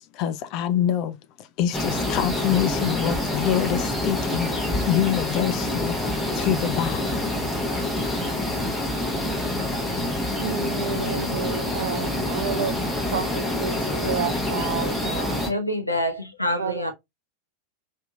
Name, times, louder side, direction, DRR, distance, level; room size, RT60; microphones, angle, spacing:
voice 1, 0.1-6.0 6.4-7.1 8.0-8.2, left 10 dB, 40° left, 0.4 m, -26 dB
sound 1, 1.7-15.5, left 1 dB, ahead, 0.8 m, -26 dB
voice 2, 10.4-12.8 13.1-15.5 16.6-16.9, right 6 dB, 60° right, 0.4 m, -30 dB
voice 3, 15.5-16.9, left 1 dB, 85° left, 0.6 m, -26 dB
2.8 x 2.6 x 2.3 m
figure-of-eight pair, 90°, 0 cm